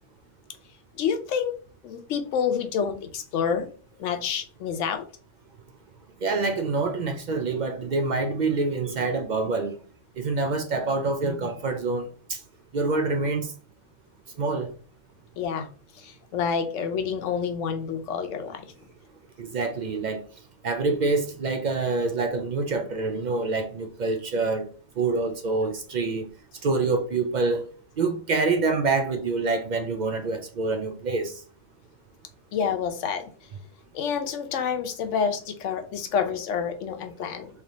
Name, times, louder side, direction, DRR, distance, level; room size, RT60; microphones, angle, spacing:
voice 1, 1.0-1.5 1.8-3.7 4.0-5.0 15.4-15.7 16.0-18.6 32.5-33.3 33.9-37.5, left 7 dB, 90° left, 1.0 m, -28 dB
voice 2, 6.2-9.8 10.2-12.4 12.7-13.5 14.4-14.7 19.4-20.2 20.6-24.7 25.0-26.2 26.6-27.6 28.0-31.3, right 3 dB, 60° right, 0.4 m, -26 dB
3.3 x 2.8 x 3.8 m
omnidirectional pair, 1.2 m